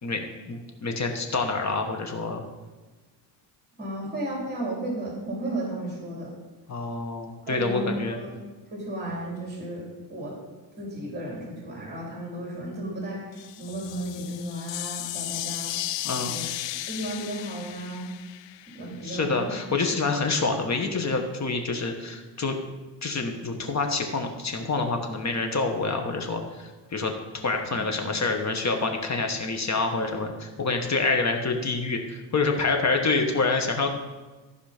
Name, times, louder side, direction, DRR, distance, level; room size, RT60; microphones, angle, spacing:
voice 1, 0.0-2.4 6.7-8.2 16.0-16.3 19.0-22.6 23.0-33.9, left 3 dB, 35° left, 4 dB, 1.4 m, -27 dB
voice 2, 3.8-6.3 7.5-8.3 8.7-10.3 10.8-16.5 16.9-18.1 18.7-19.4 27.6-27.7, right 1 dB, 20° right, -3 dB, 3.5 m, -34 dB
sound 1, 13.3-19.2, left 15 dB, 65° left, 0.5 m, -35 dB
14.5 x 5.1 x 5.1 m, 1.3 s
cardioid pair, 110°, 47 cm